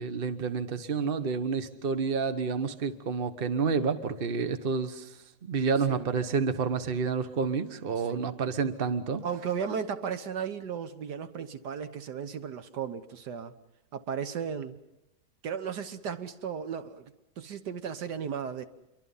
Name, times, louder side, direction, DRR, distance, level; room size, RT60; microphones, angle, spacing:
voice 1, 0.0-9.2, right 5 dB, 35° right, 10 dB, 1.3 m, -29 dB
voice 2, 9.2-13.5 13.9-14.8 15.4-17.1 17.4-18.6, right 7 dB, 80° right, 10 dB, 1.7 m, -35 dB
28.0 x 23.5 x 5.6 m, 0.93 s
omnidirectional pair, 1.8 m